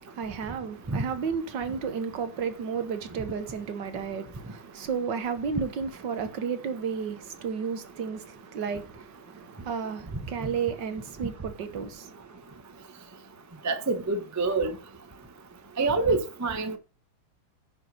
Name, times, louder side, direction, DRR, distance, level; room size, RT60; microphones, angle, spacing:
voice 1, 0.0-12.3, right 6 dB, 60° right, 1.6 m, -33 dB
voice 2, 13.6-14.7 15.8-16.8, right 3 dB, 30° right, 0.3 m, -26 dB
10.5 x 4.9 x 5.2 m
omnidirectional pair, 2.4 m